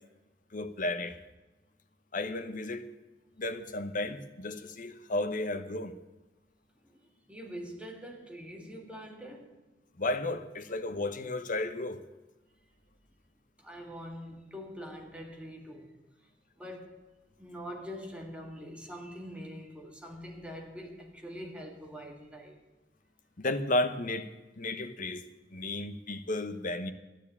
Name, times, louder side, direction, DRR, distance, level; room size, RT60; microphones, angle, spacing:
voice 1, 0.5-1.2 2.1-2.8 3.4-5.9 10.0-12.0 23.4-24.3 24.6-25.2 25.5-26.9, left 2 dB, 45° left, 0.9 m, -33 dB
voice 2, 7.3-9.6 13.6-16.0 16.6-17.1 17.4-22.6, equal, 5° right, 1.9 m, -44 dB
12.0 x 9.8 x 8.5 m
head